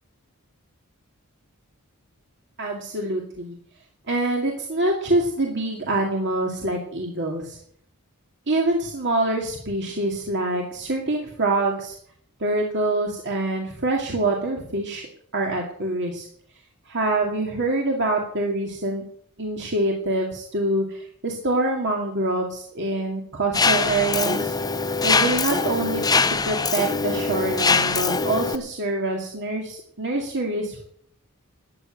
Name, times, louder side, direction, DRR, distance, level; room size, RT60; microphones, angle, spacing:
voice 1, 2.6-3.5 4.1-7.6 8.5-12.0 12.4-15.1 15.3-16.3 16.9-19.0 19.4-24.6 25.0-26.0 26.5-30.9, right 2 dB, 55° right, 0 dB, 2.3 m, -25 dB
Mechanisms, 23.5-28.5, left 4 dB, 20° left, 0.7 m, -22 dB
13.5 x 9.0 x 8.8 m, 0.64 s
head